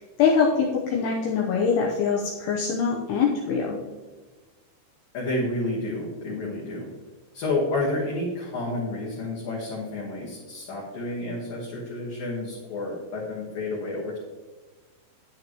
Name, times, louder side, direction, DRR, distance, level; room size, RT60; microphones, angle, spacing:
voice 1, 0.0-3.8, left 6 dB, 90° left, -1 dB, 2.3 m, -23 dB
voice 2, 5.1-6.9 7.3-14.2, left 2 dB, 65° left, -6 dB, 2.4 m, -30 dB
10.5 x 8.8 x 3.0 m, 1.3 s
omnidirectional pair, 5.6 m